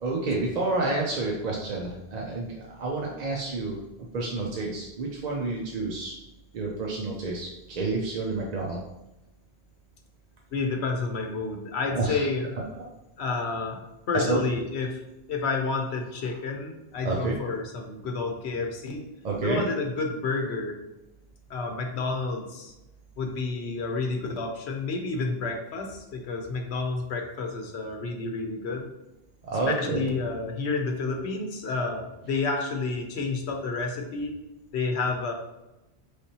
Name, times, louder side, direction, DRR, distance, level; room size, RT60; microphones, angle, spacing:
voice 1, 0.0-3.8 4.1-6.2 6.5-8.8 11.9-12.3 14.1-14.4 17.0-17.4 19.2-19.6 29.5-30.1, right 3 dB, 50° right, -2 dB, 0.6 m, -29 dB
voice 2, 10.5-12.5 13.2-13.8 14.1-15.0 15.3-19.0 19.4-20.8 21.5-22.7 23.2-28.9 29.8-34.3 34.7-35.3, left 3 dB, 80° left, 2 dB, 1.0 m, -30 dB
4.2 x 3.2 x 2.7 m, 0.95 s
omnidirectional pair, 1.1 m